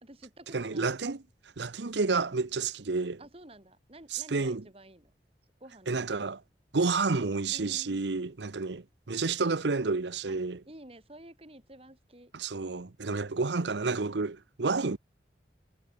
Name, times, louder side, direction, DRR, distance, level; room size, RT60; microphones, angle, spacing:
voice 1, 0.0-0.9 3.2-5.1 5.6-6.2 7.5-8.1 10.3-10.4 10.7-12.3, right 1 dB, 35° right, 3.7 m, -51 dB
voice 2, 0.5-1.2 1.6-3.2 4.1-4.6 5.9-6.4 6.7-10.6 12.3-15.0, right 4 dB, 80° right, 0.8 m, -30 dB
head